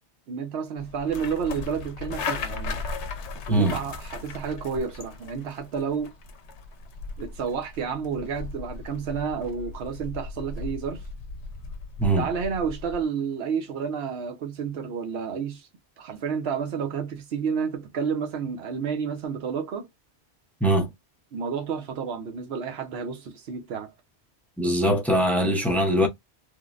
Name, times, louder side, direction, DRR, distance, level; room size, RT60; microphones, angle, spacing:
voice 1, 0.3-2.8 3.5-6.1 7.2-11.0 12.1-15.7 16.0-19.9 21.3-23.9, right 6 dB, 65° right, 1.0 m, -30 dB
sound 1, 0.8-13.0, left 4 dB, 80° left, 0.9 m, -37 dB
voice 2, 20.6-20.9 24.6-26.1, right 1 dB, 5° left, 0.3 m, -22 dB
3.2 x 2.1 x 2.4 m
omnidirectional pair, 1.1 m